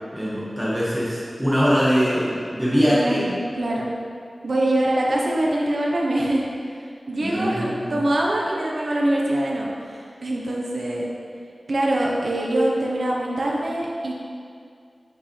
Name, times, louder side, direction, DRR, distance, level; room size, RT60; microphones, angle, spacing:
voice 1, 0.1-3.3 7.2-7.9, equal, 5° right, -8 dB, 1.6 m, -22 dB
voice 2, 2.7-3.9 4.4-11.0 11.7-14.1, right 1 dB, 80° right, -3 dB, 1.0 m, -24 dB
8.9 x 5.3 x 3.3 m, 2.3 s
wide cardioid pair, 50°, 0 cm